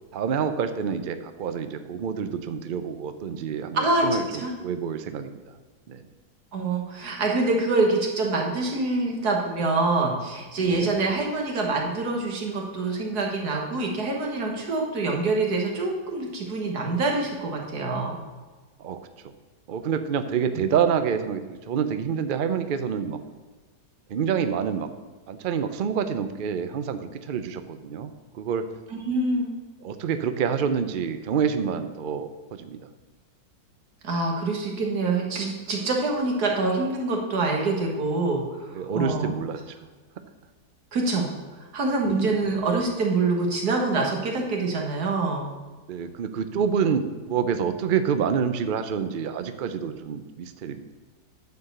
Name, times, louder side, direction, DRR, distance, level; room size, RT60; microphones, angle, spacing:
voice 1, 0.1-4.2 4.6-5.4 5.9-6.0 10.6-10.9 18.8-19.0 19.7-23.2 24.1-24.9 25.3-28.7 29.8-32.8 38.7-39.6 42.0-42.4 45.9-50.8, right 7 dB, 85° right, 9 dB, 0.4 m, -27 dB
voice 2, 3.7-4.1 4.4-4.5 6.5-18.2 28.9-29.5 34.0-39.3 40.9-41.3 41.7-45.5, right 3 dB, 70° right, 0 dB, 2.0 m, -25 dB
9.6 x 4.8 x 6.6 m, 1.3 s
omnidirectional pair, 1.7 m